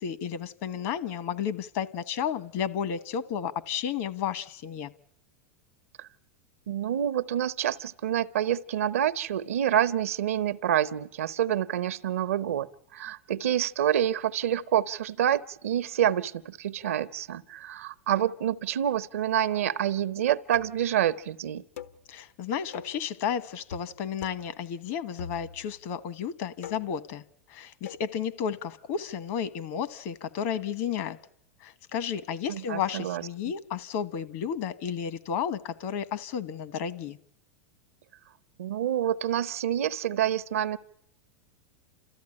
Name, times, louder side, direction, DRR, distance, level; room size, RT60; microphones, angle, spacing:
voice 1, 0.0-4.9 22.1-27.2 27.5-31.2 31.6-37.2, left 8 dB, 60° left, 1.1 m, -32 dB
voice 2, 6.7-21.6 32.5-33.5 38.6-40.8, right 10 dB, 85° right, 0.8 m, -27 dB
sound 1, 20.5-20.9 21.8-22.0 22.7-23.0 23.7-23.9 24.2-24.5 25.2-25.8 26.6-27.0 27.8-28.1, left 8 dB, 85° left, 1.2 m, -42 dB
29.5 x 14.0 x 9.9 m
hypercardioid pair, 110°, 7 cm